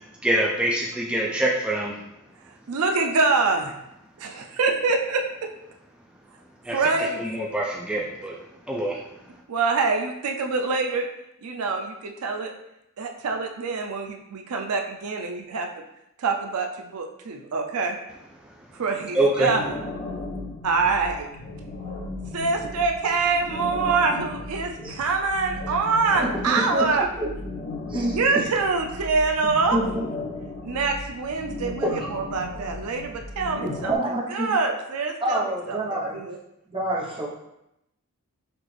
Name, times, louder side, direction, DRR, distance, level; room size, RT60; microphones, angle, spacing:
voice 1, 0.2-2.0 6.6-6.8 7.2-8.4 8.7-9.0 19.2-19.5, right 1 dB, 5° right, -3 dB, 0.4 m, -24 dB
voice 2, 2.4-3.7 4.2-5.5 6.7-7.4 9.5-11.1 11.4-12.5 13.0-15.7 16.2-18.0 18.7-19.7 20.6-21.3 22.3-27.1 28.0-29.8 30.6-36.4, right 4 dB, 80° right, 3 dB, 0.5 m, -25 dB
sound 1, 19.4-34.0, left 2 dB, 50° left, 0.9 m, -36 dB
voice 3, 26.2-27.3 27.9-28.2 29.7-30.1 31.8-32.1 33.6-34.5 35.2-36.2 36.7-37.3, right 1 dB, 25° right, -4 dB, 0.9 m, -27 dB
5.9 x 2.4 x 3.3 m, 0.86 s
head